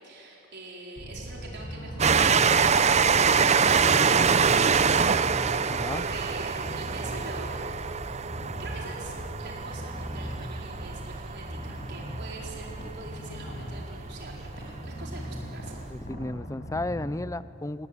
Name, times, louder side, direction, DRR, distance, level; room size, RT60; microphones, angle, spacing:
voice 1, 0.0-5.0 5.4-7.7 8.6-15.8, right 2 dB, 55° right, -2 dB, 4.4 m, -44 dB
Purr, 1.0-17.1, equal, 45° left, 5.8 m, -39 dB
Train, 2.0-13.2 13.9-14.0 14.2-14.3, right 6 dB, 35° right, 0.6 m, -24 dB
voice 2, 5.7-6.0 15.9-17.9, left 2 dB, 15° left, 16 dB, 0.6 m, -33 dB
28.5 x 18.5 x 9.8 m, 2.8 s
head